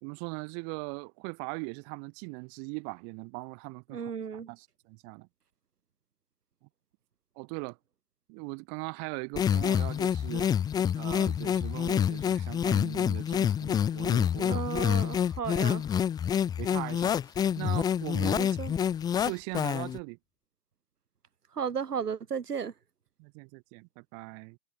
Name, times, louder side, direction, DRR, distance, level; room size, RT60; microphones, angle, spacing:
voice 1, 0.0-5.3 6.6-6.7 7.4-7.8 8.3-10.5 11.0-14.7 16.6-18.5 19.2-20.2 23.2-24.6, right 40 dB or more, 30° right, 2.1 m, -40 dB
voice 2, 3.9-4.5 14.5-15.9 18.4-18.7 21.5-22.7, right 7 dB, 75° right, 2.1 m, -34 dB
sound 1, 9.4-20.0, left 8 dB, 10° left, 0.7 m, -27 dB
figure-of-eight pair, 115°, 48 cm